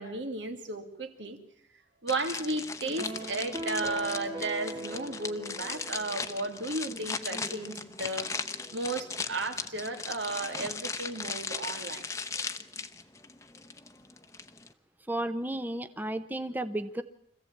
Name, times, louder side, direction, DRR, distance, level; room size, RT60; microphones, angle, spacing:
voice 1, 0.0-1.4 2.0-8.3 8.7-12.0, right 2 dB, 85° right, 6 dB, 2.5 m, -34 dB
sound 1, 2.1-14.7, left 4 dB, 15° left, 0.9 m, -38 dB
sound 2, 3.0-6.5, right 1 dB, 30° right, 1.7 m, -40 dB
voice 2, 15.1-17.0, right 1 dB, 10° right, 10 dB, 0.8 m, -33 dB
25.0 x 15.5 x 8.7 m, 0.74 s
head